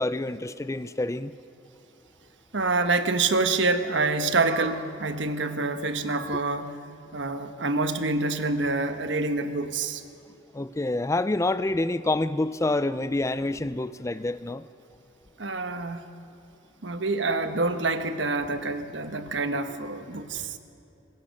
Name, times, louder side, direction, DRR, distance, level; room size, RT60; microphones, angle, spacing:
voice 1, 0.0-1.3 10.5-14.7, left 2 dB, 15° left, 14 dB, 0.4 m, -27 dB
voice 2, 2.5-6.8 7.1-10.0 15.4-16.0 16.8-20.4, right 3 dB, 65° right, 9 dB, 1.3 m, -26 dB
24.5 x 20.5 x 6.5 m, 2.8 s
head